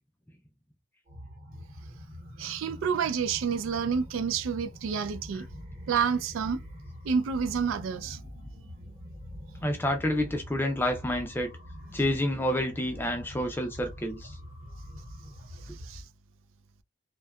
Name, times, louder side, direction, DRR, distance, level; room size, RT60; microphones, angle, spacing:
sound 1, 1.1-16.0, equal, 45° right, 0.8 m, -44 dB
voice 1, 2.4-5.5 5.9-6.6 7.0-8.2 15.9-16.0, right 6 dB, 85° right, 0.3 m, -29 dB
voice 2, 9.6-11.5 11.9-14.3, left 1 dB, 10° left, 0.4 m, -29 dB
2.6 x 2.2 x 2.2 m
head